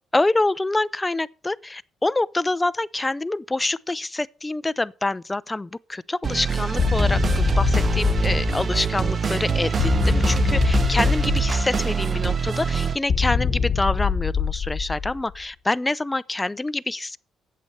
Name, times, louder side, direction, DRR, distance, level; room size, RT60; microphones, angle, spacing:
voice 1, 0.1-17.2, left 2 dB, 15° left, 0.5 m, -26 dB
sound 1, 6.2-13.0, right 6 dB, 40° right, 1.0 m, -25 dB
sound 2, 6.8-9.1 9.8-12.1 13.1-15.4, left 5 dB, 45° left, 1.1 m, -23 dB
8.4 x 7.7 x 8.0 m
cardioid pair, 90°, 0 cm